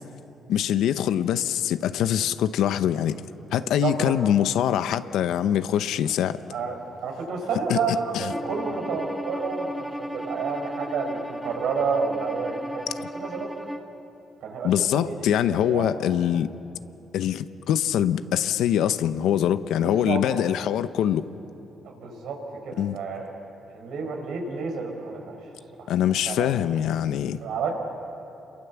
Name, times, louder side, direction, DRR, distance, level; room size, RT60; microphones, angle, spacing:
voice 1, 0.5-3.2 3.5-6.4 7.7-7.8 8.1-8.3 14.6-16.5 17.1-21.2 22.8-23.0 25.9-27.4, left 10 dB, 80° left, 0.8 m, -23 dB
voice 2, 3.6-4.1 6.5-6.8 7.0-12.8 13.1-13.5 14.4-15.9 19.8-20.2 21.8-22.4 22.6-23.3 23.7-25.4 25.8-25.9 26.3-26.5 27.4-27.7, right 5 dB, 80° right, 4.9 m, -30 dB
Bowed string instrument, 8.3-13.9, equal, ahead, 2.2 m, -35 dB
28.5 x 22.5 x 7.1 m
cardioid pair, 90°, 0 cm